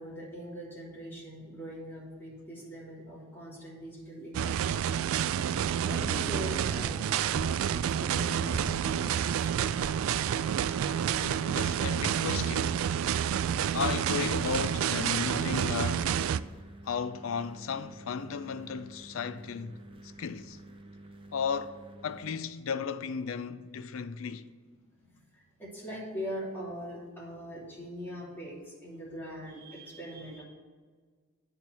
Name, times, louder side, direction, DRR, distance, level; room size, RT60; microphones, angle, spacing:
voice 1, 0.0-4.7 5.8-7.2 7.7-9.9 25.0-30.4, equal, 10° left, 2.9 m, -42 dB
sound 1, 4.3-16.4, right 9 dB, 80° right, 0.3 m, -29 dB
sound 2, 7.3-7.6 8.5-8.8 9.8-10.0 10.8-11.0 12.3-12.6, right 1 dB, 60° right, 0.9 m, -41 dB
voice 2, 11.2-12.8 13.7-16.2 16.8-19.8 20.2-20.6 21.3-21.8 22.0-24.4, left 6 dB, 75° left, 0.5 m, -34 dB
sound 3, 14.9-22.4, right 1 dB, 25° right, 0.6 m, -50 dB
9.6 x 4.5 x 6.8 m
head